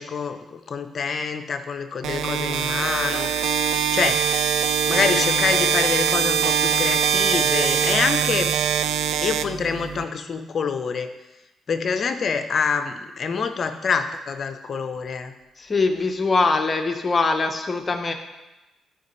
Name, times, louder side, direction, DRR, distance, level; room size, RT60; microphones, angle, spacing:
voice 1, 0.0-3.3 3.6-4.2 4.9-8.5 9.2-11.1 11.7-15.3, left 5 dB, 55° left, 8 dB, 0.8 m, -26 dB
sound 1, 2.0-10.0, right 7 dB, 75° right, 0.4 m, -22 dB
voice 2, 15.6-18.1, left 3 dB, 35° left, 5 dB, 1.1 m, -22 dB
13.0 x 5.2 x 3.2 m, 1.0 s
hypercardioid pair, 50°, 0 cm